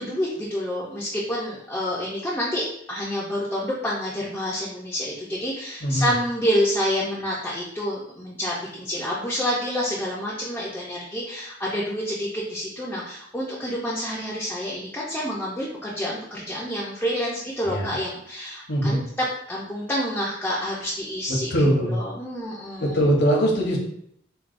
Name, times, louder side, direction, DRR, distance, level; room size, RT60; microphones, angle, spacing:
voice 1, 0.0-19.0 19.5-21.5 21.9-23.0, equal, 10° left, -6 dB, 0.5 m, -28 dB
voice 2, 5.8-6.1 17.6-18.0 18.7-19.0 21.3-22.0 22.8-23.8, equal, 60° left, -1 dB, 0.8 m, -22 dB
4.6 x 2.3 x 2.5 m, 0.71 s
head